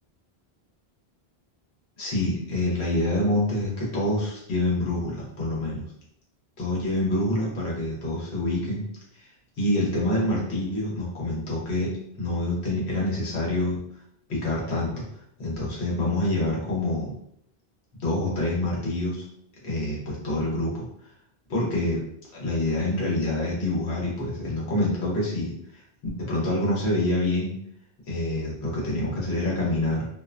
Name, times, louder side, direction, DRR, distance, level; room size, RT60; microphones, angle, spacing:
voice 1, 2.0-5.8 6.6-8.8 9.1-9.3 9.6-13.8 14.3-15.1 15.4-17.1 18.0-19.2 19.6-20.9 21.5-22.0 22.3-25.8 26.2-27.5 28.1-30.1, left 1 dB, 90° left, -4 dB, 1.1 m, -26 dB
2.5 x 2.0 x 2.4 m, 0.70 s
omnidirectional pair, 1.1 m